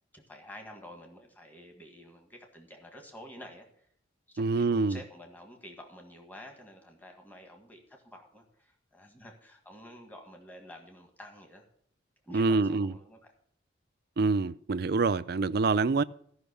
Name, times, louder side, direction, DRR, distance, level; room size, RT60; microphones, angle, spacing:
voice 1, 0.1-3.9 4.3-11.6 12.2-13.2, equal, 10° left, 1.7 m, -50 dB
voice 2, 4.4-5.0 12.3-12.9 14.2-16.0, right 3 dB, 55° right, 0.4 m, -26 dB
14.5 x 5.8 x 6.9 m
head